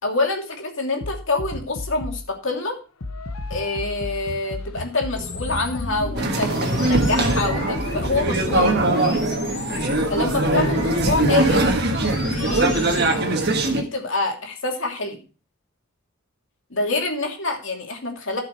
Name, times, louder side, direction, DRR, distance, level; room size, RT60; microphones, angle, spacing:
voice 1, 0.0-2.8 3.5-8.7 10.1-11.7 12.2-15.2 16.7-18.4, left 2 dB, 60° left, 1 dB, 2.8 m, -26 dB
sound 1, 1.0-2.3 3.0-9.0, left 2 dB, 80° left, 0.9 m, -34 dB
sound 2, 5.2-13.1, left 1 dB, 15° left, 1.9 m, -33 dB
sound 3, 6.2-13.8, right 2 dB, 50° right, 1.5 m, -21 dB
13.5 x 5.8 x 4.7 m, 0.35 s
head